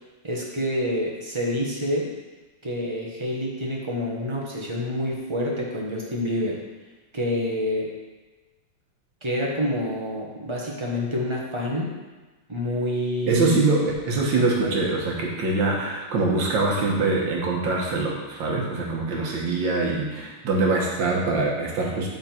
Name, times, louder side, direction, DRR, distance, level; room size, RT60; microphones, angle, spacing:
voice 1, 0.2-2.1 2.6-6.6 7.1-7.9 9.2-12.0 12.5-13.6 14.3-15.0, left 1 dB, 20° right, -3 dB, 0.8 m, -27 dB
voice 2, 13.3-22.1, right 3 dB, 60° right, -2 dB, 2.0 m, -24 dB
11.0 x 3.8 x 4.4 m, 1.2 s
omnidirectional pair, 2.3 m